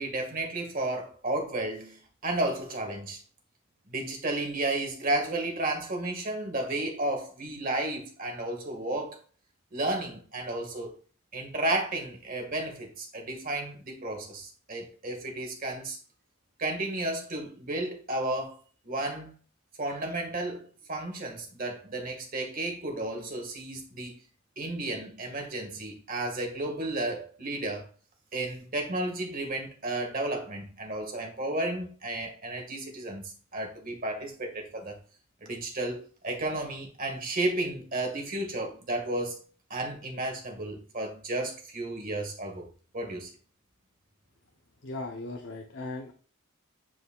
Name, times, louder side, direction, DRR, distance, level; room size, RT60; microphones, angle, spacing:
voice 1, 0.0-2.0 2.2-3.2 3.9-9.2 9.7-10.9 11.3-16.0 16.6-18.6 18.8-19.3 19.8-24.1 24.6-27.9 28.3-35.0 35.4-39.4 39.7-42.7 42.9-43.3, right 2 dB, 40° right, 1.8 m, -33 dB
voice 2, 44.8-46.1, left 2 dB, 60° left, 0.9 m, -37 dB
9.9 x 4.8 x 2.4 m
head